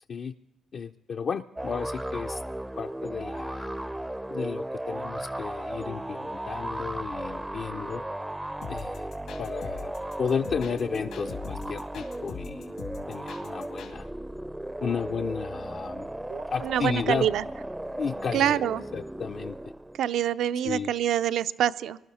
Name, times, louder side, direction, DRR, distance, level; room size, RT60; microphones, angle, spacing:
voice 1, 0.7-2.4 2.8-3.7 4.3-8.0 8.7-9.1 9.4-9.9 10.2-12.8 13.1-14.1 14.8-16.1 16.5-17.3 18.0-18.6 18.9-19.6 20.6-20.9, left 6 dB, 50° left, 5 dB, 0.4 m, -33 dB
sound 1, 1.6-20.0, right 1 dB, 10° right, 0.4 m, -36 dB
sound 2, 8.6-13.9, left 7 dB, 80° left, 2.2 m, -42 dB
voice 2, 16.3-17.4 18.3-18.8 20.0-22.0, right 10 dB, 75° right, 14 dB, 0.5 m, -26 dB
20.0 x 12.0 x 4.3 m, 0.98 s
cardioid pair, 90°, 0 cm